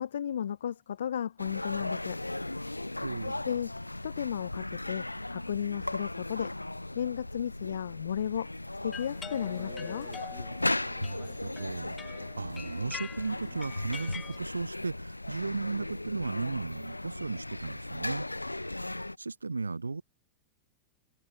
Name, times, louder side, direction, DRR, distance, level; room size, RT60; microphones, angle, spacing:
voice 1, 0.0-2.2 3.2-3.7 4.0-6.5 6.9-8.5 8.8-10.1, left 9 dB, 65° left, 3.3 m, -34 dB
sound 1, 1.4-19.2, left 1 dB, 85° left, 3.4 m, -37 dB
voice 2, 3.0-3.5 11.0-18.3 18.6-18.8 19.2-20.0, right 3 dB, 80° right, 2.1 m, -36 dB
sound 2, 8.9-14.4, left 7 dB, 20° left, 6.9 m, -45 dB
figure-of-eight pair, 90°, 0 cm